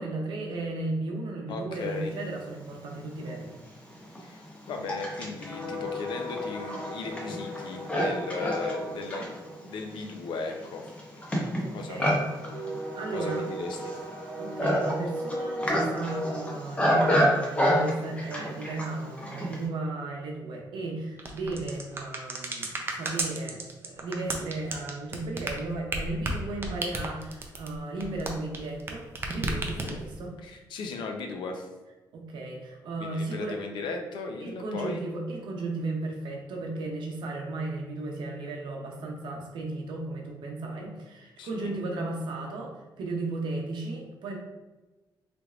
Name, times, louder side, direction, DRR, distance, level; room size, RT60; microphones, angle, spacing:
voice 1, 0.0-3.6 11.6-12.2 13.0-13.4 14.4-30.3 32.1-33.6 34.4-44.4, right 2 dB, 80° right, 1 dB, 0.7 m, -35 dB
voice 2, 1.5-2.1 4.2-10.9 11.7-12.2 13.1-13.9 29.8-30.0 30.4-31.7 33.0-35.0 41.4-41.7, left 3 dB, 75° left, 3 dB, 0.5 m, -37 dB
Livestock farm animals working animals, 2.9-3.0 3.7-19.7, equal, 15° left, 0.7 m, -29 dB
sound 1, 21.2-28.9 29.2-30.2, right 2 dB, 30° right, 0.5 m, -33 dB
3.4 x 3.1 x 2.4 m, 1.2 s
cardioid pair, 125°, 8 cm